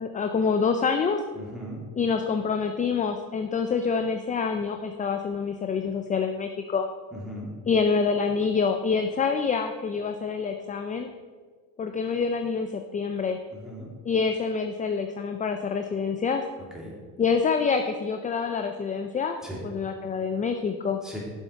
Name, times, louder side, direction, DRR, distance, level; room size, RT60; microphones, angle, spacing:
voice 1, 0.0-1.2 2.0-6.9 7.7-11.1 11.8-13.4 14.0-16.4 17.2-19.4 19.6-21.0, left 5 dB, 20° left, 6 dB, 0.4 m, -26 dB
voice 2, 1.3-1.8 7.1-7.5 13.5-13.9 16.6-16.9 19.4-19.6 21.0-21.2, equal, ahead, -4 dB, 2.8 m, -38 dB
7.2 x 7.0 x 5.7 m, 1.5 s
cardioid pair, 110°, 48 cm